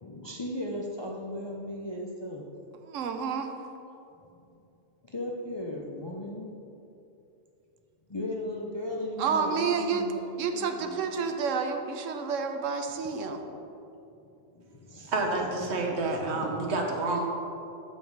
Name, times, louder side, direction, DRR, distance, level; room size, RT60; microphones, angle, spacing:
voice 1, 0.0-2.6 4.1-4.6 5.0-6.5 8.1-10.3 10.5-11.1 13.4-13.6 14.2-15.1 15.4-16.8, left 1 dB, 35° left, -2 dB, 0.4 m, -37 dB
voice 2, 2.9-3.5 9.2-10.1 10.4-13.4, right 5 dB, 80° right, 6 dB, 1.0 m, -29 dB
voice 3, 15.1-17.3, right 2 dB, 60° right, 1 dB, 1.2 m, -29 dB
7.4 x 5.5 x 4.7 m, 2.7 s
omnidirectional pair, 1.3 m